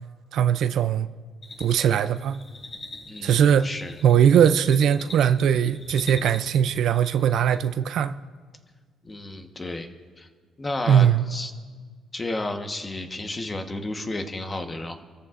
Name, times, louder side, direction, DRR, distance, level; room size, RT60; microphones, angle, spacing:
voice 1, 0.3-1.1 1.6-2.4 3.2-3.7 4.0-8.2 10.9-11.2, right 9 dB, 70° right, 0.5 m, -20 dB
sound 1, 1.4-7.8, left 3 dB, 45° left, 5.2 m, -44 dB
voice 2, 3.1-3.9 9.0-9.9 10.2-10.3 10.6-11.5 12.1-15.0, left 2 dB, 20° left, 1.2 m, -32 dB
27.5 x 13.5 x 2.5 m
cardioid pair, 135°, 0 cm